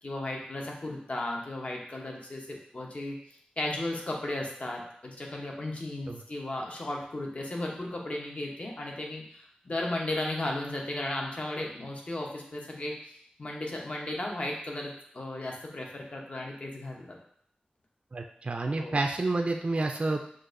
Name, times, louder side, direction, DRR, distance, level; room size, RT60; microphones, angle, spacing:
voice 1, 0.0-3.2 3.6-17.2 18.8-19.0, left 1 dB, 45° left, -1 dB, 0.8 m, -35 dB
voice 2, 18.1-20.2, right 2 dB, 40° right, 3 dB, 0.3 m, -29 dB
6.1 x 2.5 x 2.5 m, 0.65 s
wide cardioid pair, 85°, 3 cm